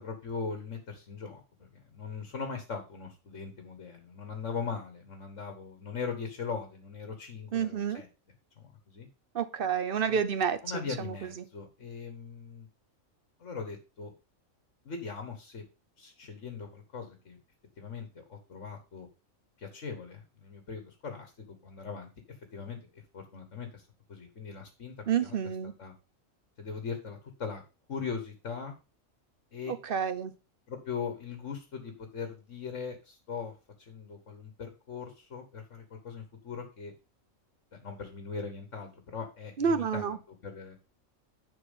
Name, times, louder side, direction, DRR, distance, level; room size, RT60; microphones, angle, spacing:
voice 1, 0.0-8.1 8.6-9.1 10.1-10.2 10.6-12.7 13.4-14.1 14.9-15.6 16.0-17.4 17.8-19.1 19.6-22.1 22.5-24.9 25.2-25.4 25.8-25.9 26.6-27.6 27.9-28.8 29.5-29.8 30.7-36.9 37.7-40.7, left 5 dB, 60° left, 1.8 m, -40 dB
voice 2, 7.5-8.0 9.3-11.1 25.1-25.7 29.7-30.3 39.6-40.2, right 7 dB, 45° right, 0.9 m, -29 dB
10.0 x 4.5 x 5.5 m
omnidirectional pair, 1.4 m